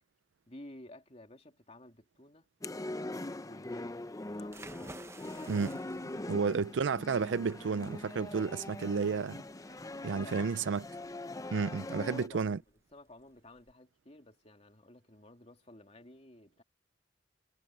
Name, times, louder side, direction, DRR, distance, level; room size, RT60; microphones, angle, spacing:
voice 1, 0.5-2.5 3.4-4.0 4.3-4.6 6.1-6.6 9.8-10.5 11.6-12.6 12.9-16.6, left 1 dB, 35° left, 2.9 m, -53 dB
sound 1, 2.6-12.3, left 2 dB, 20° left, 0.5 m, -42 dB
sound 2, 4.4-13.7, right 2 dB, 15° right, 0.9 m, -55 dB
voice 2, 5.5-5.8 6.3-9.4 10.0-10.8 11.5-12.6, right 5 dB, 80° right, 0.4 m, -31 dB
head